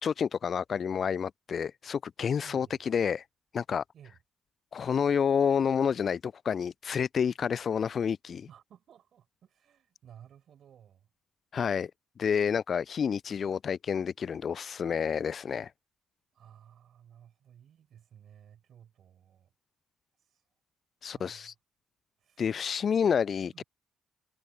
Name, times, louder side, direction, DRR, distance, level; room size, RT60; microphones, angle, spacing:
voice 1, 0.0-3.2 3.5-3.8 4.7-8.5 11.5-11.9 12.2-15.7 21.0-21.5 22.4-23.6, left 7 dB, 50° left, 0.4 m, -29 dB
voice 2, 2.4-2.8 3.9-4.2 8.5-11.1 16.3-19.5 20.2-20.4 21.1-21.6 22.2-22.6 23.0-23.1 23.5-23.6, right 9 dB, 55° right, 7.6 m, -56 dB
figure-of-eight pair, 40°, 0 cm